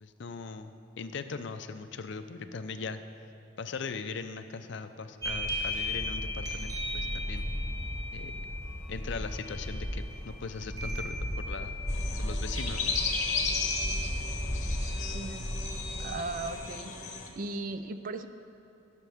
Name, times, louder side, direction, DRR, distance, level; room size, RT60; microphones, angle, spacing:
voice 1, 0.0-3.0 3.6-7.5 8.1-8.3 8.9-11.8 12.2-12.9, left 4 dB, 60° left, 10 dB, 0.5 m, -39 dB
sound 1, 5.2-16.5, left 1 dB, 20° right, 2.6 m, -34 dB
sound 2, 11.9-17.3, left 5 dB, 35° left, 1.0 m, -35 dB
voice 2, 15.1-15.4 16.0-16.9 17.3-18.3, right 3 dB, 45° right, 10 dB, 0.4 m, -37 dB
19.0 x 6.7 x 3.6 m, 2.8 s
head